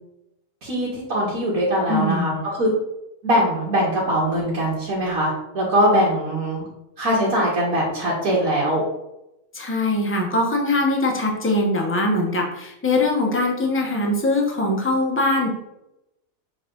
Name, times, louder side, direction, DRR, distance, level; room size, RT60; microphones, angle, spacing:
voice 1, 0.6-2.7 3.2-6.6 7.0-8.8, equal, 90° right, -8 dB, 2.1 m, -21 dB
voice 2, 1.9-2.5 9.5-15.5, left 2 dB, 10° left, -1 dB, 0.9 m, -22 dB
6.8 x 3.7 x 3.8 m, 0.88 s
omnidirectional pair, 1.4 m